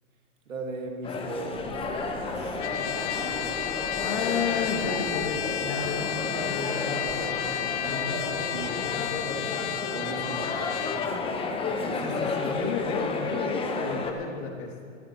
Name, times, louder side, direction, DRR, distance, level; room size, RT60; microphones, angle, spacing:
voice 1, 0.5-3.3 4.0-4.2 7.8-8.3 8.5-9.0 9.9-10.7, right 3 dB, 80° right, 2 dB, 2.4 m, -39 dB
sound 1, 1.0-14.1, left 3 dB, 15° left, 1.0 m, -32 dB
sound 2, 1.5-9.6, right 1 dB, 5° right, 1.8 m, -42 dB
Trumpet, 2.6-11.1, left 11 dB, 60° left, 0.8 m, -32 dB
voice 2, 4.0-7.4 7.8-8.3 8.6-9.9 12.0-14.7, left 5 dB, 40° left, 0 dB, 2.6 m, -33 dB
19.0 x 13.5 x 3.1 m, 2.3 s
hypercardioid pair, 125°, 39 cm